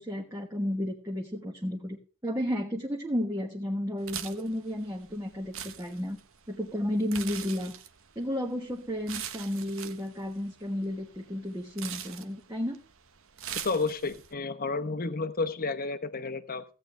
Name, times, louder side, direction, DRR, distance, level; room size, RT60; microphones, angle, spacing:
voice 1, 0.0-2.0 2.2-6.2 6.5-7.7 8.2-12.8, left 1 dB, 15° right, -1 dB, 1.3 m, -32 dB
sound 1, 4.0-14.3, right 9 dB, 65° right, 0.9 m, -43 dB
voice 2, 13.6-16.6, left 3 dB, 45° left, 11 dB, 1.0 m, -31 dB
16.0 x 8.9 x 3.3 m, 0.35 s
head